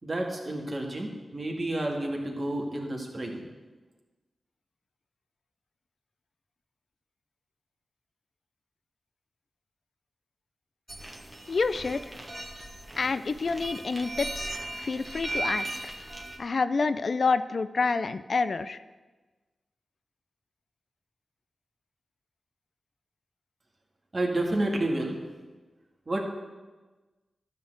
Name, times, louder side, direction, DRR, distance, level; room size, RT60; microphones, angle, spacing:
voice 1, 0.0-3.4 24.1-25.2 26.1-26.2, right 1 dB, 45° right, 0 dB, 2.1 m, -30 dB
sound 1, 10.9-16.4, right 2 dB, 25° right, 2.0 m, -37 dB
voice 2, 11.5-12.1 13.0-15.7 16.4-18.8, left 4 dB, 65° left, 13 dB, 0.4 m, -28 dB
11.5 x 4.2 x 7.9 m, 1.2 s
cardioid pair, 45°, 0 cm